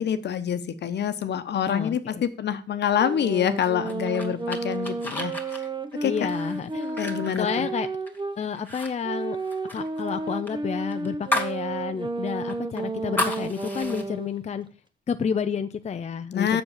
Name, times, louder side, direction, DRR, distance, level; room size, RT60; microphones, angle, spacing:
voice 1, 0.0-5.3 6.0-6.1 7.0-7.7 16.3-16.6, left 9 dB, 60° left, 11 dB, 1.1 m, -26 dB
voice 2, 1.7-2.2 6.0-7.0 7.4-7.9 8.4-9.4 9.7-14.7 15.1-16.6, left 6 dB, 35° left, 9 dB, 0.6 m, -30 dB
sound 1, 2.9-8.4 9.0-14.4, right 3 dB, 25° right, 1.2 m, -32 dB
sound 2, 3.6-8.2 8.6-8.9 9.2-11.6 12.0-12.1 12.5-14.0, left 2 dB, 10° left, 2.2 m, -33 dB
7.2 x 6.4 x 7.2 m, 0.37 s
cardioid pair, 90°, 20 cm